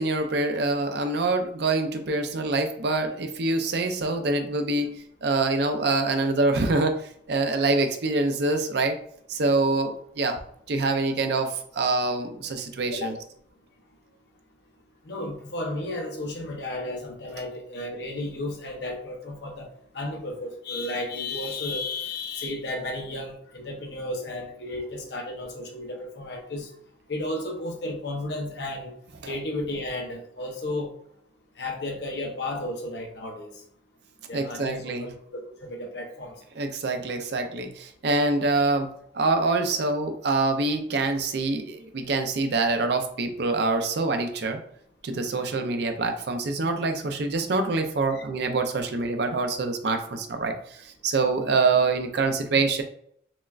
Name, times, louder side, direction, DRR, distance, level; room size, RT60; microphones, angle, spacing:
voice 1, 0.0-4.9 5.2-7.0 7.3-9.0 9.3-10.4 10.7-13.1 34.3-35.1 36.6-38.9 39.1-44.6 45.0-52.8, right 3 dB, 60° right, 5 dB, 0.5 m, -25 dB
voice 2, 15.0-19.7 19.9-26.7 27.1-28.9 29.3-30.9 31.6-33.5 34.3-36.3 48.1-48.2, left 2 dB, 65° left, 1 dB, 0.8 m, -33 dB
6.0 x 2.2 x 2.4 m, 0.68 s
head